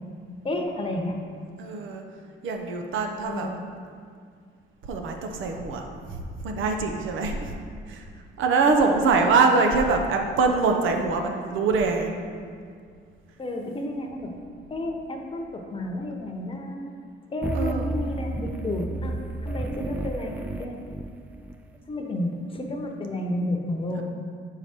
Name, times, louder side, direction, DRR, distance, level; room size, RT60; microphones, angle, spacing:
voice 1, 0.4-1.1 3.2-3.6 8.8-9.1 13.4-14.3 14.7-16.9 17.3-20.8 21.9-24.0, left 1 dB, 25° left, 2 dB, 0.9 m, -31 dB
voice 2, 1.6-2.0 2.4-3.5 4.8-7.5 7.9-8.1 8.4-12.1 17.5-17.9 23.9-24.0, right 4 dB, 80° right, 4 dB, 0.8 m, -24 dB
sound 1, 17.4-21.5, right 2 dB, 10° right, 0.3 m, -32 dB
6.7 x 4.8 x 4.4 m, 2.1 s
cardioid pair, 90°, 20 cm